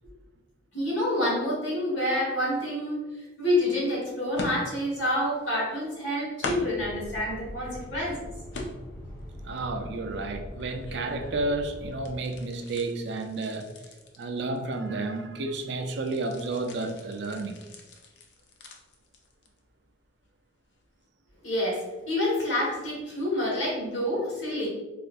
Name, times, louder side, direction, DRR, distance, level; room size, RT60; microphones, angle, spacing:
voice 1, 0.7-3.0 3.4-8.3 21.4-24.7, left 1 dB, 90° left, -4 dB, 1.5 m, -28 dB
sound 1, 3.6-3.7 4.3-5.1 5.3-6.0 6.4-6.9 7.5-8.1 8.5-9.2 9.6-11.7 11.9-15.2 15.5-19.7 20.0-20.3 20.7-20.8, left 2 dB, 65° left, 0.5 m, -41 dB
sound 2, 6.7-12.1, equal, 15° left, 1.1 m, -42 dB
voice 2, 9.4-13.7 14.2-17.6, right 2 dB, 65° right, 6 dB, 0.4 m, -31 dB
4.2 x 2.4 x 2.5 m, 1.2 s
head